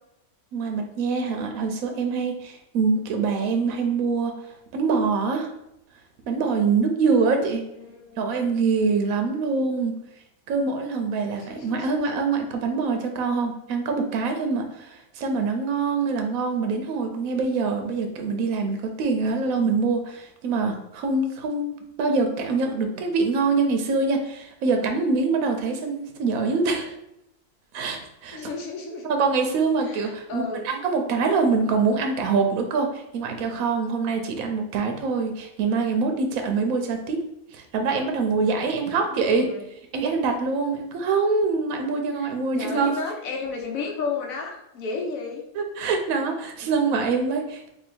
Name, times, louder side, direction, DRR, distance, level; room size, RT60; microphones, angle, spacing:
voice 1, 0.5-4.4 4.7-5.5 6.3-7.7 8.2-10.0 10.5-26.9 27.7-28.4 29.0-37.2 37.5-39.5 39.9-42.9 45.6-47.7, right 4 dB, 85° right, 4 dB, 1.0 m, -24 dB
voice 2, 7.7-8.4 11.4-12.0 28.3-29.1 29.8-30.6 39.0-39.6 42.1-42.3 42.6-45.4, left 4 dB, 90° left, 1 dB, 1.2 m, -33 dB
2.8 x 2.7 x 4.3 m, 0.82 s
omnidirectional pair, 1.4 m